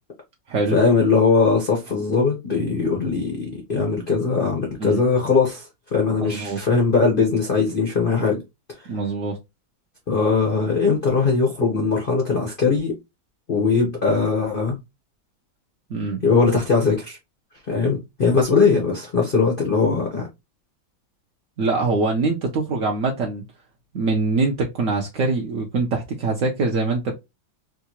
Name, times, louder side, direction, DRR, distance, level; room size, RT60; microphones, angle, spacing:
voice 1, 0.7-8.4 10.1-12.9 13.5-14.8 16.2-17.2 17.7-20.3, left 4 dB, 70° left, 0.5 m, -20 dB
voice 2, 6.2-6.6 8.9-9.4 15.9-16.2 21.6-23.4 23.9-27.2, right 3 dB, 75° right, 0.7 m, -23 dB
3.7 x 2.4 x 2.8 m
omnidirectional pair, 2.1 m